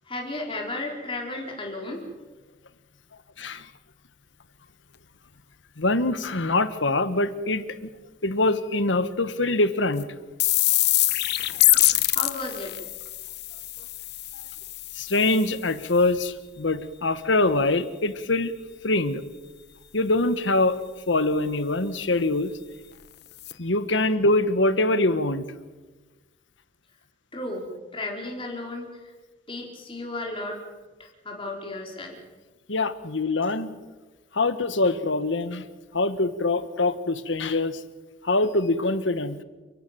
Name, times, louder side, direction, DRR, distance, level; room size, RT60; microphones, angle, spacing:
voice 1, 0.1-2.1 12.1-12.7 27.3-29.1 29.5-30.6 31.0-32.2, left 2 dB, 30° left, 0 dB, 4.6 m, -34 dB
voice 2, 5.8-7.9 8.2-10.1 11.6-11.8 14.9-18.5 18.8-19.2 19.9-20.8 21.1-22.5 23.6-25.5 32.7-33.7 34.3-35.6 35.9-37.8 38.2-39.4, left 2 dB, 85° left, 12 dB, 1.4 m, -24 dB
sound 1, 10.0-10.1 10.4-16.0 22.9-23.0 23.4-23.5, left 16 dB, 60° left, 0.8 m, -24 dB
30.0 x 11.5 x 9.1 m, 1.2 s
head